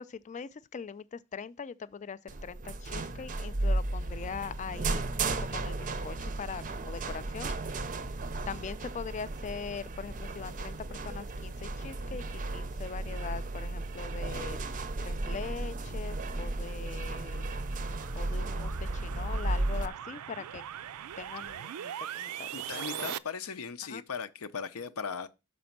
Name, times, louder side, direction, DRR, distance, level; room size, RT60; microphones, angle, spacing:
voice 1, 0.0-5.8 6.0-7.5 8.5-14.6 15.0-17.5 18.1-20.6 21.2-23.2 23.8-24.0, left 6 dB, 35° left, 0.3 m, -42 dB
sound 1, 2.3-19.9, right 2 dB, 35° right, 0.5 m, -34 dB
sound 2, 16.7-23.2, right 10 dB, 90° right, 0.4 m, -41 dB
voice 2, 22.5-25.3, left 6 dB, 70° left, 0.7 m, -38 dB
6.1 x 5.1 x 5.8 m
head